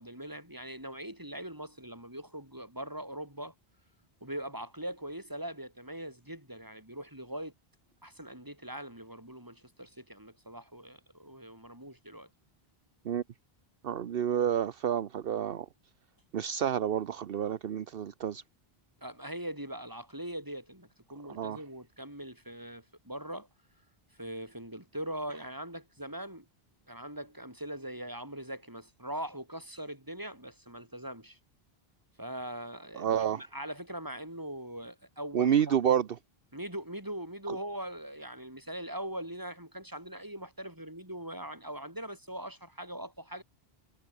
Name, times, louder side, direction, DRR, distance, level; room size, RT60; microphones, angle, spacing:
voice 1, 0.0-3.5 4.2-7.5 8.0-12.3 19.0-23.5 24.2-26.5 26.9-31.4 32.2-35.8 36.5-43.4, right 1 dB, 20° right, 5.3 m, -41 dB
voice 2, 13.8-15.7 16.3-18.4 21.4-21.6 32.9-33.4 35.3-36.1 37.5-37.6, right 9 dB, 65° right, 1.0 m, -29 dB
omnidirectional pair, 1.0 m